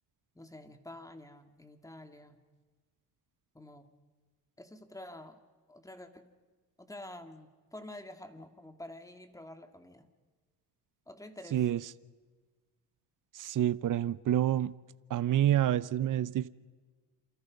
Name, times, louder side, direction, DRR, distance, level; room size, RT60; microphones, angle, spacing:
voice 1, 0.3-2.4 3.5-3.9 4.6-5.4 5.7-6.3 6.8-10.1 11.1-11.6, left 1 dB, 5° left, 7 dB, 2.4 m, -48 dB
voice 2, 11.5-11.8 13.3-14.7 15.1-16.5, right 11 dB, 45° right, 16 dB, 0.9 m, -28 dB
28.0 x 27.5 x 5.4 m, 1.4 s
cardioid pair, 110°, 44 cm